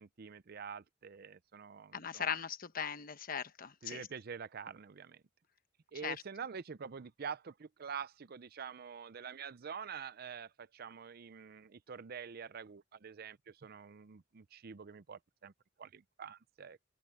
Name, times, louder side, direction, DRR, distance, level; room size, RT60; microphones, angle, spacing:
voice 1, 0.0-2.2 3.8-5.2 5.9-15.5 15.8-16.8, right 6 dB, 55° right, 0.5 m, -46 dB
voice 2, 1.9-4.1 6.0-6.1, left 7 dB, 50° left, 1.1 m, -39 dB
open air
head